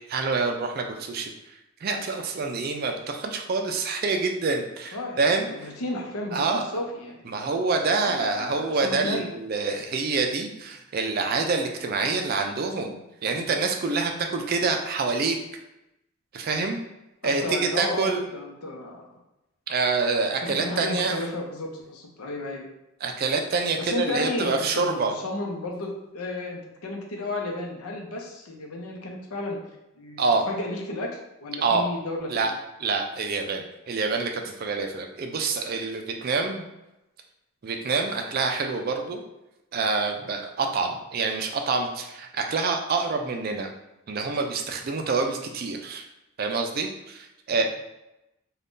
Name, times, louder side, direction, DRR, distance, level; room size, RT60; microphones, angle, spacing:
voice 1, 0.1-1.3 1.8-5.5 6.3-6.6 7.3-15.4 16.3-16.8 17.2-18.2 19.7-21.2 23.0-25.1 30.2-30.4 31.6-31.9 32.3-32.5 32.8-36.6 37.6-39.2 39.7-43.7 44.1-46.0 46.4-47.6, right 4 dB, 45° right, 4 dB, 0.3 m, -26 dB
voice 2, 4.9-7.6 8.1-9.3 14.3-14.4 17.2-19.0 20.4-22.7 23.8-29.6 30.0-32.5 47.5-47.6, left 2 dB, 90° left, 1 dB, 0.6 m, -33 dB
2.6 x 2.3 x 3.5 m, 0.92 s
head